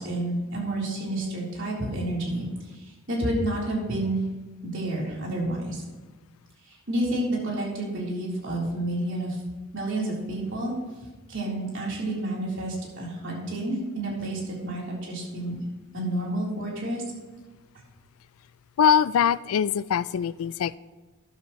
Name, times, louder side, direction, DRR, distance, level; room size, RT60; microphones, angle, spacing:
voice 1, 0.0-4.2 4.6-5.8 6.7-9.4 9.7-10.7 11.3-15.5 15.9-17.0, right 1 dB, 60° right, 3.7 m, -30 dB
voice 2, 18.8-20.8, left 8 dB, 70° left, 0.3 m, -22 dB
13.0 x 11.0 x 3.1 m
head